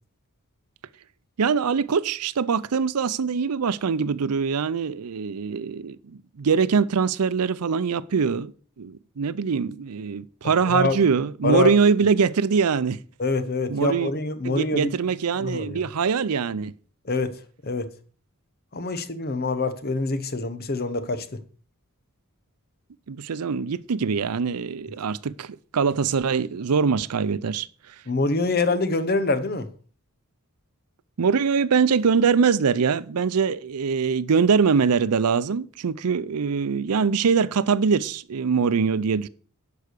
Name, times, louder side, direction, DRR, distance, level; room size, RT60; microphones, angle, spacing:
voice 1, 1.4-8.5 8.8-13.0 13.7-14.1 14.4-16.7 23.1-27.7 31.2-39.3, right 5 dB, 90° right, 0.5 m, -23 dB
voice 2, 10.7-11.0 11.4-11.7 13.2-14.9 15.4-15.8 17.0-17.4 17.6-17.9 18.7-21.4 28.1-29.7, left 3 dB, 45° left, 0.9 m, -25 dB
11.5 x 4.9 x 6.7 m
head